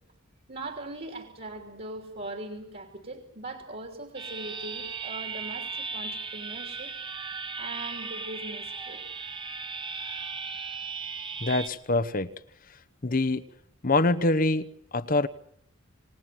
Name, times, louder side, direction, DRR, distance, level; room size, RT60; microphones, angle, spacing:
voice 1, 0.5-6.9 7.6-9.0, right 2 dB, 45° right, 3.2 m, -40 dB
sound 1, 4.1-11.7, right 5 dB, 25° right, 1.1 m, -36 dB
voice 2, 11.4-12.3 13.0-13.4 13.8-15.3, left 2 dB, 45° left, 1.0 m, -25 dB
27.5 x 20.0 x 7.7 m
head